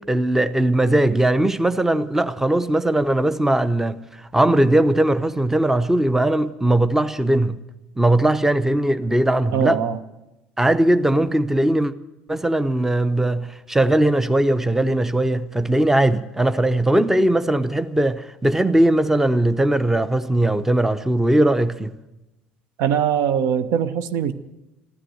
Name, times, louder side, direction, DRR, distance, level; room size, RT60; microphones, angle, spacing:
voice 1, 0.0-7.6 8.0-9.8 10.6-11.9 12.3-21.9, right 1 dB, 5° right, 0.7 m, -19 dB
voice 2, 9.5-10.0 22.8-24.3, right 8 dB, 55° right, 0.8 m, -21 dB
14.5 x 12.5 x 7.8 m
figure-of-eight pair, 60°, 6 cm